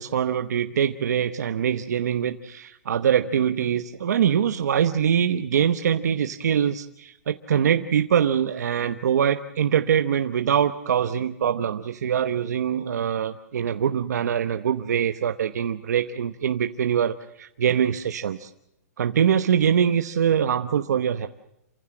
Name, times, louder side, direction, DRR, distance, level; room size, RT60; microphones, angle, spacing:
voice 1, 0.0-18.5 19.0-21.3, right 8 dB, 75° right, 9 dB, 1.0 m, -23 dB
28.0 x 15.5 x 7.7 m, 0.85 s
hypercardioid pair, 160°, 9 cm